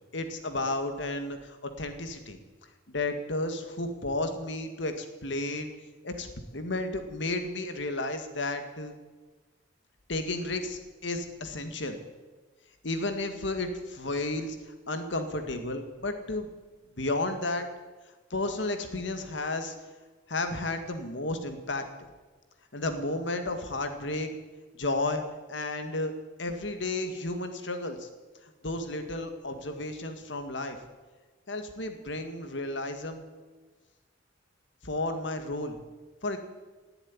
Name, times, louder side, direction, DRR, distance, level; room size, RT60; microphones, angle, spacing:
voice 1, 0.1-2.4 2.9-5.7 6.0-8.9 10.1-12.0 12.8-14.6 14.9-16.5 17.0-17.7 18.3-19.7 20.3-21.8 22.7-24.3 24.8-25.2 25.5-26.1 26.4-28.1 28.4-30.8 31.5-33.3 34.8-35.8 36.2-36.4, left 2 dB, 65° left, 7 dB, 1.9 m, -32 dB
18.0 x 8.0 x 9.9 m, 1.3 s
head